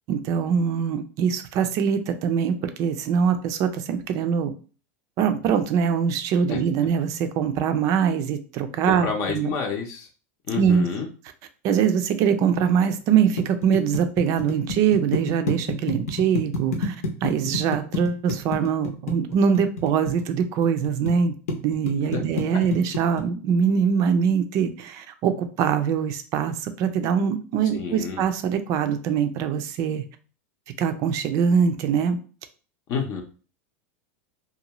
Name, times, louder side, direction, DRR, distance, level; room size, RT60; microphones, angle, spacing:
voice 1, 0.1-4.5 5.2-9.5 10.5-10.9 11.6-17.0 17.2-21.3 21.6-30.0 30.8-32.2, right 7 dB, 45° right, 0.4 m, -23 dB
voice 2, 8.8-10.1 10.5-11.1 22.0-22.2 22.5-22.6 27.7-28.2 32.9-33.2, left 5 dB, 45° left, 0.6 m, -29 dB
sound 1, 12.9-21.1 21.5-23.2, left 2 dB, 85° left, 0.8 m, -28 dB
2.6 x 2.3 x 2.9 m
supercardioid pair, 135°, 8 cm